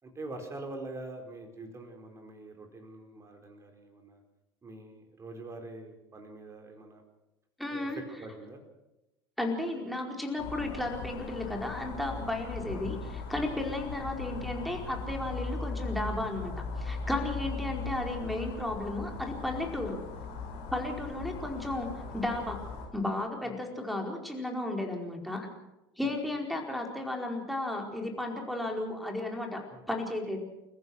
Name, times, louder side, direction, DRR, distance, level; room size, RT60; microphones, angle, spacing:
voice 1, 0.0-4.2 4.6-7.0 7.7-8.6 12.7-12.9 17.4-17.5 23.4-23.6 26.0-26.3 29.7-29.8, right 2 dB, 20° right, 4 dB, 4.5 m, -44 dB
voice 2, 7.6-8.0 9.4-20.0 20.7-22.6 22.9-25.5 26.0-29.6 29.9-30.4, left 1 dB, ahead, 1 dB, 4.8 m, -34 dB
sound 1, 10.4-22.9, left 4 dB, 50° left, 5.5 m, -39 dB
29.0 x 15.0 x 6.5 m, 0.96 s
figure-of-eight pair, 75°, 13 cm